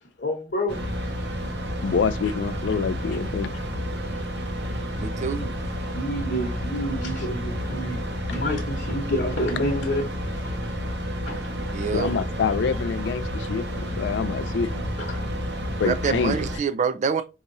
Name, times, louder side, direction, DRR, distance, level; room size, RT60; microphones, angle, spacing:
voice 1, 0.0-1.6 4.7-4.8 5.4-5.5 5.9-10.6 11.2-11.4 15.0-15.2, equal, 60° left, 1.0 m, -30 dB
sound 1, 0.7-16.6, equal, 75° right, 1.0 m, -30 dB
voice 2, 1.8-3.5 11.9-14.8 15.8-16.4, left 5 dB, 90° left, 0.3 m, -26 dB
voice 3, 5.0-5.5 11.7-12.1 15.8-17.2, right 5 dB, 45° right, 0.4 m, -26 dB
4.7 x 2.8 x 2.6 m
head